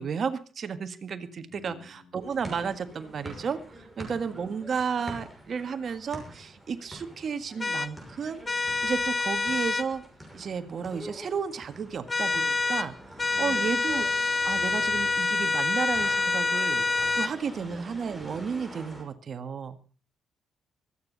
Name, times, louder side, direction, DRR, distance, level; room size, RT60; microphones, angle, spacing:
voice 1, 0.0-8.4 8.8-10.0 10.3-12.9 13.2-16.9 17.1-19.8, right 6 dB, 50° right, 10 dB, 1.6 m, -33 dB
voice 2, 1.5-2.1 4.1-4.7 13.3-13.7 17.4-17.8, left 5 dB, 80° left, 3 dB, 7.1 m, -49 dB
sound 1, 2.2-19.0, equal, 5° right, 6.0 m, -46 dB
sound 2, 7.6-7.9 8.5-9.9 12.1-12.9 13.2-17.3, left 3 dB, 25° left, 0.6 m, -27 dB
24.0 x 9.3 x 4.0 m, 0.34 s
cardioid pair, 90°, 0 cm